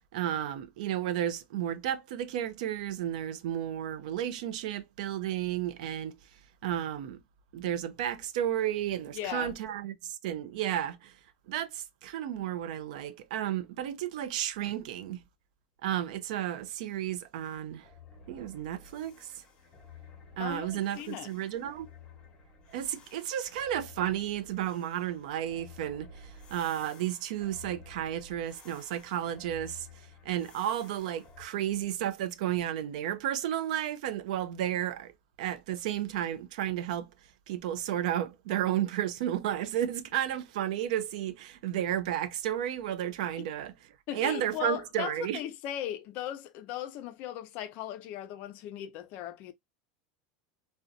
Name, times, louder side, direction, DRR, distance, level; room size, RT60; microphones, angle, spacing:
voice 1, 0.1-6.2 6.6-7.2 7.5-11.1 11.5-15.2 15.8-17.9 18.3-19.4 20.4-21.9 22.7-29.9 30.2-35.1 35.4-37.1 37.5-43.7 44.1-45.4, right 11 dB, 75° right, 0.4 m, -32 dB
voice 2, 9.1-9.6 20.4-21.3 44.1-49.5, left 11 dB, 45° left, 0.4 m, -38 dB
sound 1, 17.8-31.5, left 4 dB, 25° left, 0.8 m, -53 dB
2.5 x 2.1 x 2.5 m
supercardioid pair, 155°, 4 cm